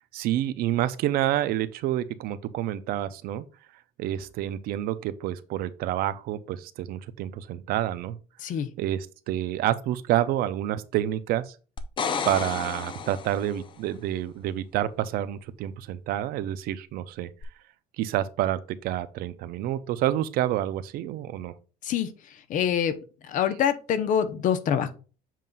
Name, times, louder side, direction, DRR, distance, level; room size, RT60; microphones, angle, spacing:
voice 1, 0.1-3.4 4.0-8.2 8.8-11.5 12.3-17.3 18.0-21.5, right 12 dB, 65° right, 0.6 m, -28 dB
sound 1, 11.8-13.7 17.4-17.5, left 6 dB, 30° left, 0.6 m, -32 dB
voice 2, 22.5-22.9 23.3-24.9, left 8 dB, 50° left, 0.9 m, -25 dB
7.4 x 2.5 x 5.3 m
cardioid pair, 145°, 17 cm